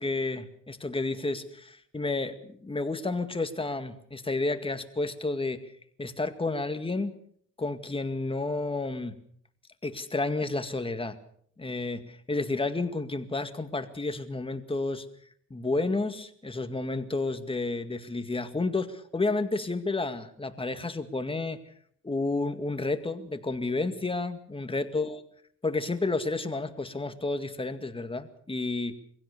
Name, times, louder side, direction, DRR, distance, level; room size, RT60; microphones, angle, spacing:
voice 1, 0.0-5.7 6.0-7.1 7.6-9.2 9.8-11.2 11.6-15.1 15.5-21.6 22.0-25.2 25.6-29.0, left 3 dB, 20° left, 8 dB, 2.1 m, -31 dB
23.0 x 16.5 x 6.9 m, 0.64 s
cardioid pair, 90°, 30 cm